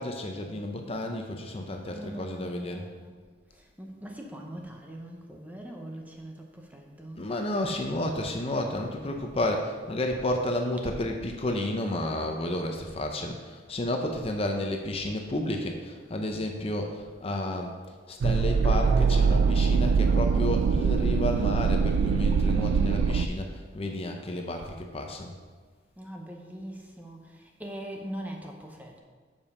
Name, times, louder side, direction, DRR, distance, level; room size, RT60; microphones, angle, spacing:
voice 1, 0.0-2.9 7.2-17.7 18.1-25.3, left 1 dB, 30° left, 3 dB, 0.6 m, -31 dB
voice 2, 1.8-3.1 3.5-7.4 9.5-9.7 26.0-29.0, right 1 dB, 10° right, 1 dB, 0.8 m, -42 dB
sound 1, 18.2-23.3, right 5 dB, 75° right, 0.3 m, -23 dB
7.1 x 5.3 x 5.4 m, 1.5 s
head